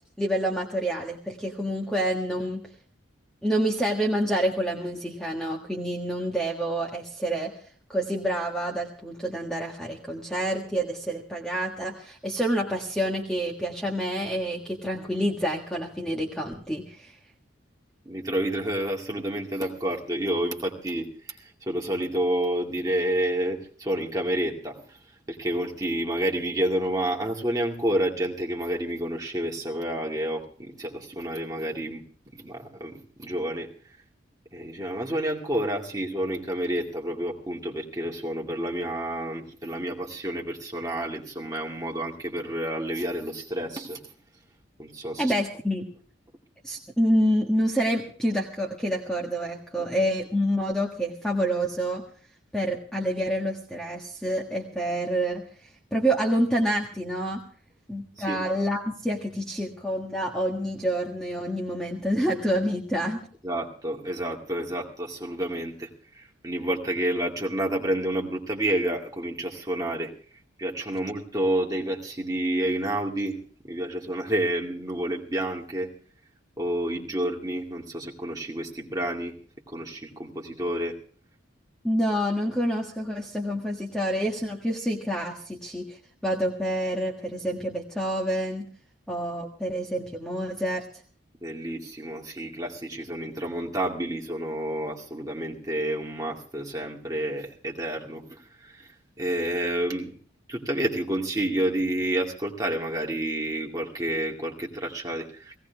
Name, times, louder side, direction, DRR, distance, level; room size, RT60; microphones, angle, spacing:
voice 1, 0.2-2.7 3.4-7.5 7.9-17.1 45.2-45.9 46.6-52.0 52.5-55.4 55.9-57.4 57.9-63.2 81.8-88.6 89.1-90.8, equal, 5° left, -1 dB, 1.5 m, -27 dB
voice 2, 18.1-21.1 21.4-24.8 25.3-32.0 32.3-33.7 34.5-44.0 44.8-45.3 49.8-49.9 58.2-58.4 63.4-65.9 66.1-70.1 70.6-73.4 73.6-75.9 76.6-79.4 79.7-81.0 91.4-98.9 99.2-100.2 100.5-105.6, right 1 dB, 20° right, -1 dB, 2.3 m, -29 dB
18.0 x 17.0 x 3.5 m, 0.43 s
head